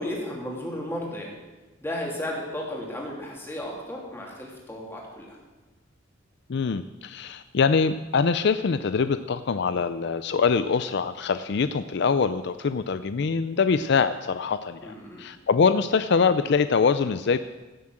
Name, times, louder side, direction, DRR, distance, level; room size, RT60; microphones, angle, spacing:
voice 1, 0.0-1.3 1.8-5.4 14.8-15.2, left 1 dB, 10° left, -2 dB, 3.1 m, -34 dB
voice 2, 6.5-17.4, left 5 dB, 60° left, 12 dB, 0.4 m, -24 dB
16.0 x 7.5 x 7.7 m, 1.2 s
head